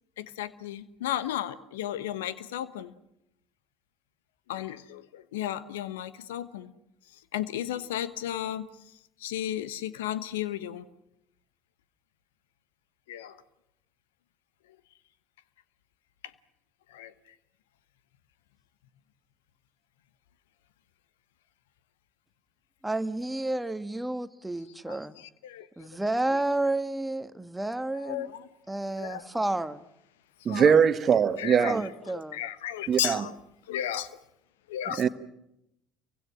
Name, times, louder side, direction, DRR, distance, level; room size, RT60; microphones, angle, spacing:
voice 1, 0.2-2.9 4.5-6.7 7.3-8.7 9.2-10.9 13.1-13.4 16.9-17.1 24.9-25.9 27.9-28.5 29.0-29.2 30.5-30.8 31.4-31.8 32.1-33.3 33.7-34.1 34.7-35.0, left 11 dB, 75° left, 1.1 m, -34 dB
voice 2, 22.8-25.1 25.8-28.3 28.7-29.8 31.6-32.4, right 2 dB, 10° right, 1.5 m, -31 dB
voice 3, 30.4-31.8 32.9-33.2 35.0-35.1, right 7 dB, 40° right, 1.4 m, -21 dB
29.0 x 24.0 x 6.3 m
figure-of-eight pair, 60°, 0 cm